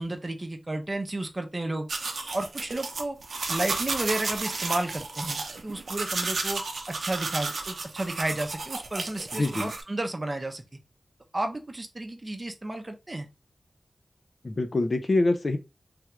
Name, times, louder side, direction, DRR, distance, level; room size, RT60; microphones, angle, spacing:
voice 1, 0.0-1.9 2.3-3.2 3.5-6.6 6.9-10.6 11.3-13.3, right 2 dB, 35° right, 0.6 m, -32 dB
sound 1, 1.9-9.8, right 3 dB, 90° right, 0.6 m, -32 dB
voice 2, 9.4-9.7 14.4-15.6, left 2 dB, 55° left, 0.5 m, -25 dB
3.4 x 2.3 x 2.9 m
wide cardioid pair, 55°, 0 cm